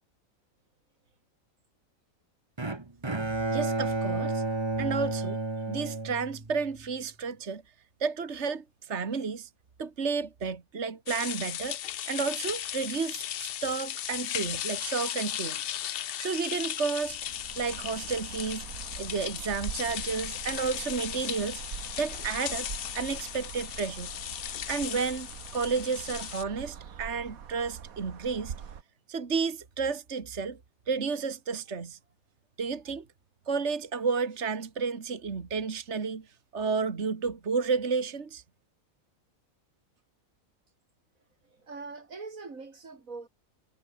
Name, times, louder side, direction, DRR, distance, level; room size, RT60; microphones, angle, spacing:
Bowed string instrument, 2.6-6.8, right 2 dB, 20° right, 1.4 m, -31 dB
voice 1, 3.5-4.4 4.8-5.4 5.7-7.6 8.0-9.5 9.8-11.8 12.1-15.6 16.2-17.2 17.6-18.7 19.0-21.6 22.0-24.1 24.7-25.3 25.5-28.5 29.1-30.6 30.9-32.0 32.6-33.1 33.5-36.3 36.5-38.4, right 5 dB, 55° right, 2.0 m, -31 dB
sound 1, 11.1-26.4, left 11 dB, 60° left, 0.6 m, -36 dB
sound 2, 17.0-28.8, right 7 dB, 90° right, 1.8 m, -43 dB
voice 2, 41.4-43.3, right 4 dB, 75° right, 3.3 m, -42 dB
omnidirectional pair, 1.4 m